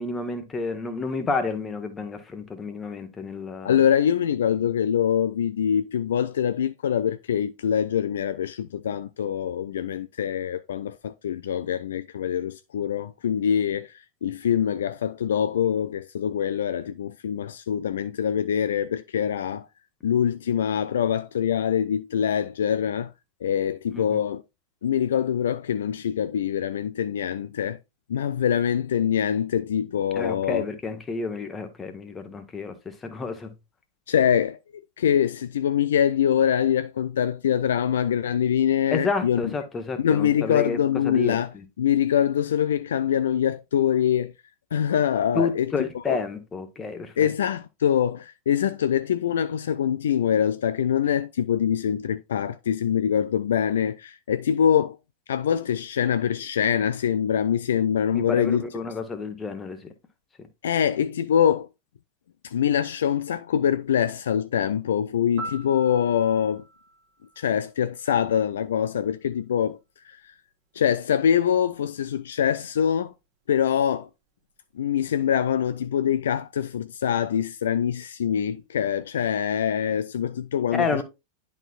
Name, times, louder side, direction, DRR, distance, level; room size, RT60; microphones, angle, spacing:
voice 1, 0.0-3.8 23.9-24.2 30.1-33.5 38.9-40.8 41.0-41.6 45.3-47.3 58.1-59.9 80.7-81.0, left 4 dB, 15° left, 1.2 m, -30 dB
voice 2, 3.6-13.9 14.2-19.7 20.0-23.1 23.4-24.4 24.8-27.8 28.1-30.7 34.1-39.4 40.0-41.5 41.8-44.3 44.7-46.2 47.2-55.0 55.3-58.6 60.6-61.7 62.4-66.6 67.4-69.8 70.0-70.2 70.7-73.1 73.5-74.1 74.8-81.0, left 9 dB, 65° left, 0.3 m, -24 dB
Piano, 65.4-68.3 76.5-76.7, right 3 dB, 40° right, 1.4 m, -42 dB
10.5 x 4.3 x 2.4 m
figure-of-eight pair, 90°, 0 cm